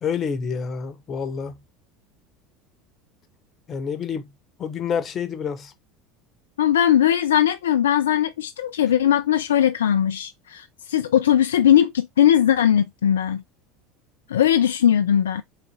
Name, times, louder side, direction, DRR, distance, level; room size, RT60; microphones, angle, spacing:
voice 1, 0.0-1.6 3.7-4.3 4.6-5.7, left 6 dB, 35° left, 0.9 m, -28 dB
voice 2, 6.6-13.4 14.3-15.4, left 10 dB, 75° left, 0.4 m, -19 dB
4.1 x 3.7 x 3.2 m
hypercardioid pair, 75°, 0 cm